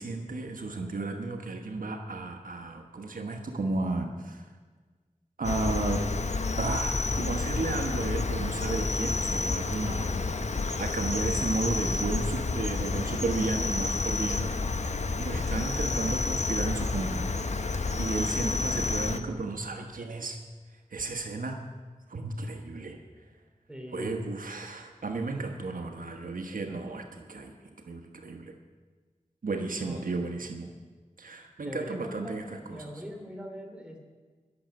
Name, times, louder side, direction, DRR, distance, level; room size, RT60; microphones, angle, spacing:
voice 1, 0.0-4.4 5.4-6.0 6.6-10.4 10.8-14.5 15.1-17.3 18.0-20.4 20.9-21.6 22.1-23.0 23.9-27.5 27.9-28.5 29.4-30.7 31.2-32.4 32.7-32.8, right 3 dB, 85° right, 4 dB, 1.3 m, -33 dB
Cricket, 5.4-19.2, left 3 dB, 55° left, 0.9 m, -30 dB
voice 2, 23.7-24.3 26.7-26.8 29.8-30.3 31.6-34.0, equal, 5° right, 2 dB, 3.1 m, -42 dB
21.5 x 7.2 x 6.5 m, 1.4 s
wide cardioid pair, 50°, 14 cm